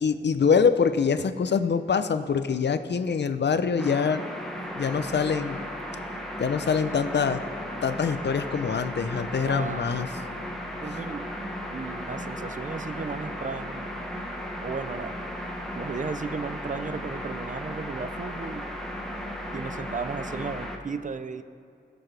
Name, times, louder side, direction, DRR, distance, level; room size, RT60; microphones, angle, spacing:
voice 1, 0.0-4.2 4.7-5.6 6.4-7.4 7.8-10.1, left 6 dB, 70° left, 10 dB, 0.6 m, -24 dB
sound 1, 3.8-20.8, equal, ahead, 1.1 m, -35 dB
voice 2, 9.5-10.0 10.8-13.9 14.6-15.1 15.7-18.6 19.5-21.4, right 5 dB, 45° right, 12 dB, 0.5 m, -35 dB
20.0 x 6.9 x 3.3 m, 2.4 s
wide cardioid pair, 95°, 18 cm